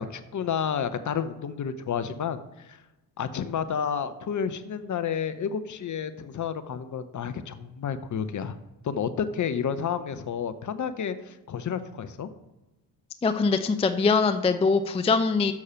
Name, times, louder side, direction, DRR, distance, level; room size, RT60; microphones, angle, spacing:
voice 1, 0.0-2.8 3.2-8.6 8.8-12.3, left 7 dB, 40° left, 12 dB, 0.8 m, -30 dB
voice 2, 13.2-15.5, left 4 dB, 15° left, 9 dB, 0.4 m, -23 dB
7.1 x 6.5 x 4.4 m, 1.0 s
hypercardioid pair, 55°, 48 cm